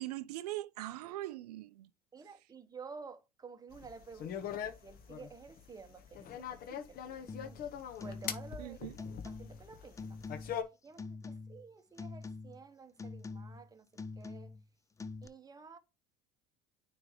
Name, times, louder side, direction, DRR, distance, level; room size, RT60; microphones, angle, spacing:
voice 1, 0.0-1.9 2.2-2.3 8.6-9.0, right 16 dB, 85° right, 0.4 m, -41 dB
voice 2, 2.1-7.7 8.0-10.2 10.8-14.5 15.2-15.8, right 5 dB, 20° right, 0.9 m, -52 dB
sound 1, 3.7-10.6, left 8 dB, 50° left, 1.0 m, -42 dB
sound 2, 7.3-7.6 8.0-8.7 9.0-9.7 10.0-10.6 11.0-11.7 12.0-12.6 13.0-13.7 14.0-14.7 15.0-15.3, left 4 dB, 15° left, 0.5 m, -45 dB
9.5 x 3.3 x 3.0 m
hypercardioid pair, 85°, 20 cm